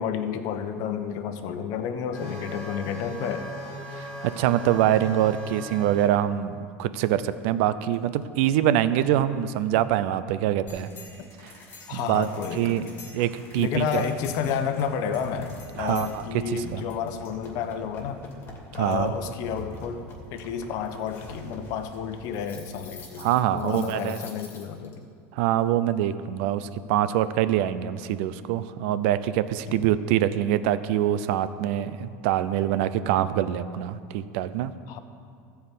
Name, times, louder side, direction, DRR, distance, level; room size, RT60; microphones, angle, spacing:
voice 1, 0.0-3.5 11.9-13.0 13.6-18.2 18.8-25.1 29.7-29.8 34.9-35.0, left 7 dB, 60° left, 8 dB, 0.9 m, -31 dB
sound 1, 2.1-6.1 7.9-8.0 12.8-12.9, equal, 15° left, 2.6 m, -38 dB
voice 2, 3.9-10.9 11.4-11.5 11.9-12.3 12.5-12.9 13.1-14.1 15.8-16.8 18.7-19.1 23.2-24.2 25.3-34.7, right 11 dB, 70° right, 14 dB, 0.5 m, -25 dB
sound 2, 10.7-24.9, left 2 dB, 35° left, 2.4 m, -44 dB
14.0 x 4.8 x 8.4 m, 2.3 s
supercardioid pair, 130°, 7 cm